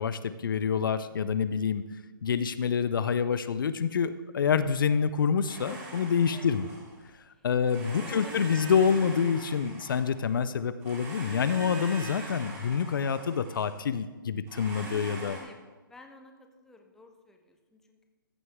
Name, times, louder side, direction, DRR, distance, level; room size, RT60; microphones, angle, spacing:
voice 1, 0.0-1.8 2.2-6.7 7.4-15.4, left 6 dB, 65° left, 13 dB, 0.5 m, -27 dB
Domestic sounds home sounds, 5.4-7.1 7.6-10.4 10.8-13.8 14.5-15.4, right 1 dB, 20° right, 2.7 m, -42 dB
voice 2, 7.8-8.6 15.2-15.6 15.9-18.1, left 2 dB, 5° left, 3 dB, 0.7 m, -52 dB
14.5 x 6.5 x 3.6 m, 1.3 s
hypercardioid pair, 145°, 12 cm